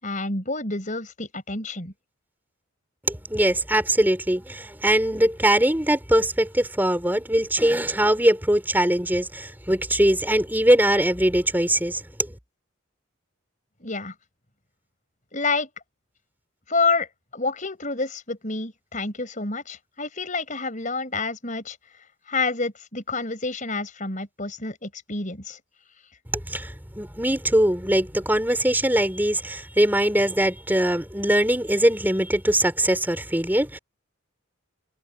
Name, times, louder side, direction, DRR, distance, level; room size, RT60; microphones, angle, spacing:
voice 1, 0.0-1.9 13.8-14.1 15.3-15.7 16.7-21.8 22.3-25.6, left 3 dB, 40° left, 5.4 m, -28 dB
voice 2, 3.1-12.3 26.5-33.8, right 1 dB, 10° right, 3.7 m, -21 dB
head